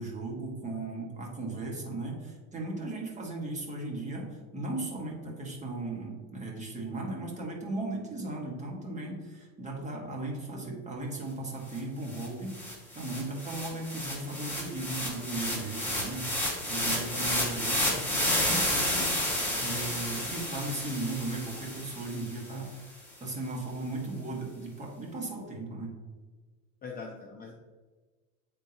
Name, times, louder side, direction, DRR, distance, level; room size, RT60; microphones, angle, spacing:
voice 1, 0.0-16.4 16.7-25.9, right 2 dB, 15° right, -1 dB, 1.7 m, -37 dB
sound 1, 11.8-11.9 12.1-22.5, left 1 dB, 5° left, 1.6 m, -31 dB
voice 2, 26.8-27.5, left 4 dB, 25° left, 1 dB, 0.6 m, -42 dB
9.1 x 3.7 x 2.9 m, 1.3 s
supercardioid pair, 120°, 40 cm